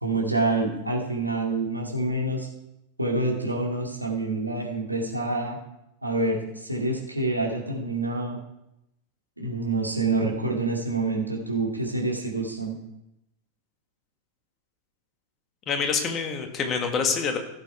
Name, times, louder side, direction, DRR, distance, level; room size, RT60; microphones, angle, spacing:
voice 1, 0.0-2.5 3.0-5.6 6.0-8.4 9.4-12.8, right 2 dB, 85° right, -1 dB, 2.3 m, -27 dB
voice 2, 15.7-17.4, left 5 dB, 30° left, 5 dB, 1.8 m, -26 dB
16.0 x 6.9 x 4.6 m, 0.86 s
figure-of-eight pair, 90°, 0 cm